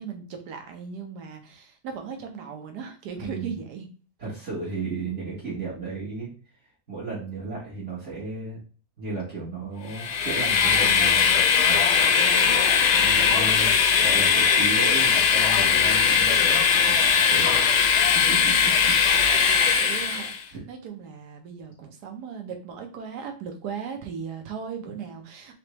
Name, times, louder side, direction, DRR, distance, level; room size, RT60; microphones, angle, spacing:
voice 1, 0.0-3.9 12.1-12.6 12.9-13.7 18.6-18.9 19.3-25.5, right 6 dB, 75° right, 5 dB, 1.4 m, -38 dB
voice 2, 3.2-3.5 4.2-6.3 6.9-8.6 9.0-11.9 12.9-13.7 14.0-17.6 18.1-19.0 20.5-20.6 24.8-24.9, right 3 dB, 50° right, -7 dB, 1.4 m, -34 dB
Train, 9.9-20.4, left 7 dB, 80° left, 1.1 m, -20 dB
3.8 x 3.4 x 3.0 m, 0.38 s
omnidirectional pair, 1.8 m